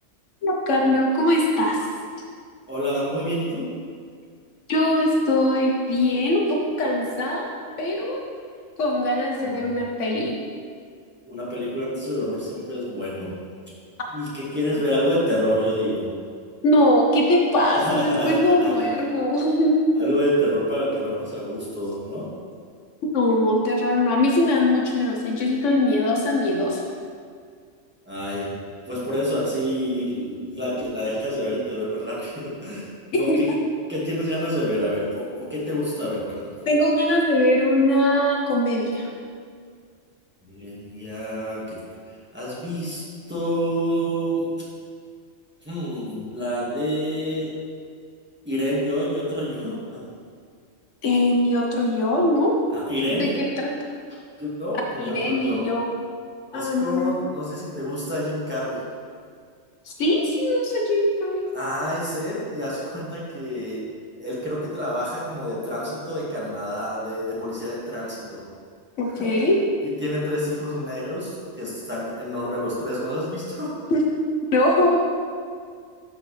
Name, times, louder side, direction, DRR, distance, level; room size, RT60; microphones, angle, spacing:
voice 1, 0.4-1.8 4.7-7.5 7.8-8.2 8.8-10.3 16.6-19.8 23.1-26.8 33.1-33.4 36.7-39.1 51.0-52.6 53.1-53.3 53.6-53.7 55.0-55.9 56.5-57.2 59.9-61.4 69.0-69.6 73.9-74.0 74.5-75.0, left 1 dB, 70° left, 0 dB, 1.1 m, -21 dB
voice 2, 2.7-3.7 9.4-9.8 11.2-13.4 14.1-16.1 17.7-19.1 19.9-22.3 28.0-28.5 28.8-32.9 33.2-33.5 33.9-36.4 40.4-41.8 42.3-44.5 45.6-47.5 48.4-50.0 52.7-53.4 54.4-55.7 56.5-58.8 61.5-63.8 64.2-68.4 69.0-69.3 70.0-73.8, equal, 10° right, -8 dB, 1.7 m, -27 dB
11.0 x 4.5 x 3.2 m, 2.1 s
omnidirectional pair, 1.3 m